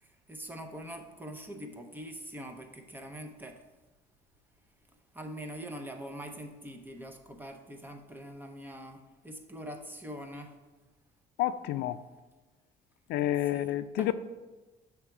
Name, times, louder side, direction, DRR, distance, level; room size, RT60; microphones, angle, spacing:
voice 1, 0.3-3.6 5.1-10.6 13.5-13.7 14.0-14.1, equal, 10° right, 0.7 m, -43 dB
voice 2, 11.4-12.0 13.1-14.1, left 13 dB, 75° left, 0.4 m, -29 dB
6.4 x 3.4 x 5.9 m
cardioid pair, 110°, 17 cm